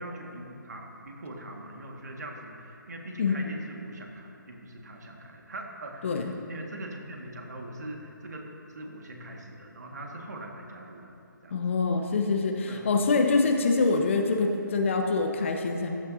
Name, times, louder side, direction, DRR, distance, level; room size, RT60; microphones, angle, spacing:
voice 1, 0.0-6.2 6.5-11.2 11.4-11.6 12.7-13.0, right 1 dB, 55° right, 1 dB, 1.8 m, -42 dB
voice 2, 11.5-15.9, left 4 dB, 35° left, 3 dB, 1.0 m, -25 dB
15.0 x 12.5 x 2.8 m, 2.7 s
figure-of-eight pair, 145°, 11 cm